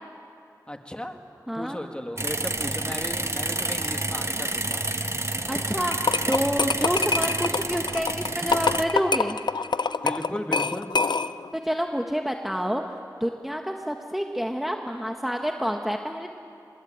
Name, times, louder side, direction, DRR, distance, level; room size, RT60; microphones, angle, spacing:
voice 1, 0.7-1.2 1.6-4.8 10.0-10.9, equal, 15° left, 5 dB, 2.1 m, -35 dB
voice 2, 1.5-1.8 5.5-9.4 11.5-16.3, equal, 5° right, 3 dB, 1.4 m, -28 dB
sound 1, 2.2-8.8, right 2 dB, 40° right, 1.4 m, -29 dB
sound 2, 5.9-11.5, left 4 dB, 85° left, 0.5 m, -26 dB
26.0 x 20.5 x 8.8 m, 2.7 s
wide cardioid pair, 55°, 7 cm